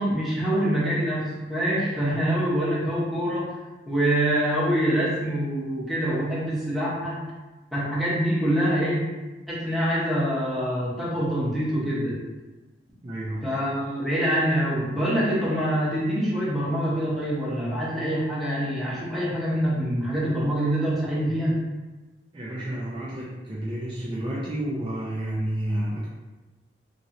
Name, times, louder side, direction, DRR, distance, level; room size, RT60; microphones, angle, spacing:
voice 1, 0.0-3.5 3.9-7.2 7.7-9.0 9.5-12.2 13.4-21.6, equal, ahead, -9 dB, 0.9 m, -25 dB
voice 2, 13.0-13.6 22.3-26.1, right 1 dB, 30° right, -7 dB, 0.4 m, -30 dB
3.0 x 2.9 x 2.5 m, 1.2 s
head